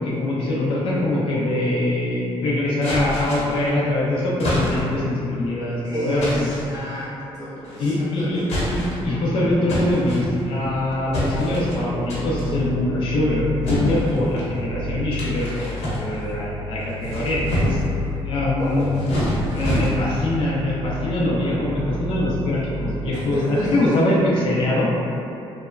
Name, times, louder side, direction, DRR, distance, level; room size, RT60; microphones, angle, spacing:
voice 1, 0.0-6.5 7.8-17.8 18.2-19.2 19.5-24.9, left 1 dB, 55° left, -6 dB, 0.5 m, -23 dB
sound 1, 2.8-3.7 4.4-5.0 6.2-6.7 7.6-8.0 8.4-9.1 9.7-10.7 11.1-11.8 12.1-12.5 13.6-14.5 15.1-16.4 16.9-17.9 18.7-20.3, equal, 85° left, 0.8 m, -27 dB
voice 2, 5.8-8.7 18.6-18.9 23.1-24.2, equal, 35° right, -12 dB, 0.7 m, -29 dB
sound 2, 10.6-23.3, left 1 dB, 60° right, 0.4 m, -32 dB
3.0 x 2.0 x 2.3 m, 2.7 s
cardioid pair, 165°, 11 cm